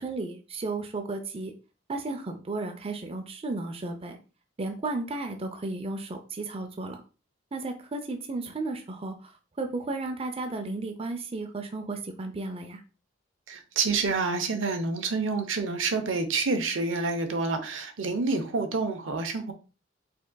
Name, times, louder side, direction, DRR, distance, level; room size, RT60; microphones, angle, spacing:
voice 1, 0.0-1.5 1.9-4.2 4.6-7.0 7.5-9.3 9.6-12.8, right 3 dB, 30° right, 0.5 m, -34 dB
voice 2, 13.5-19.5, right 4 dB, 75° right, 0.8 m, -28 dB
5.1 x 3.7 x 2.2 m
head